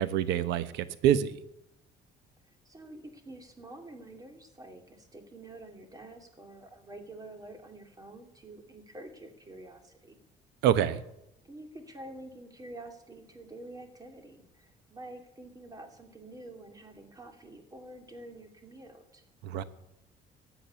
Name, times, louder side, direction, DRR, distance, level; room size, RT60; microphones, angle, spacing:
voice 1, 0.0-1.4 10.6-11.0 19.4-19.6, right 10 dB, 90° right, 0.9 m, -26 dB
voice 2, 2.6-10.2 11.4-19.2, right 2 dB, 20° right, 2.7 m, -48 dB
13.0 x 8.0 x 9.7 m
cardioid pair, 110°, 17 cm